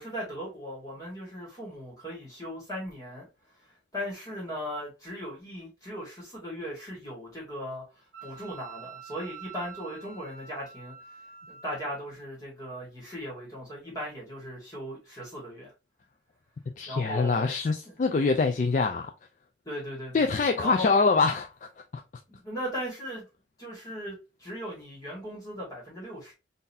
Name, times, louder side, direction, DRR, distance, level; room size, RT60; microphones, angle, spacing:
voice 1, 0.0-3.3 3.9-10.9 11.5-15.7 16.8-17.5 17.8-17.9 19.6-20.3 20.6-20.9 22.3-23.2 23.6-26.3, equal, 20° left, 1.7 m, -38 dB
Wind instrument woodwind instrument, 8.1-11.9, right 8 dB, 55° right, 1.2 m, -47 dB
voice 2, 16.8-19.1 20.1-22.0, left 4 dB, 40° left, 0.3 m, -25 dB
3.8 x 2.6 x 2.6 m
head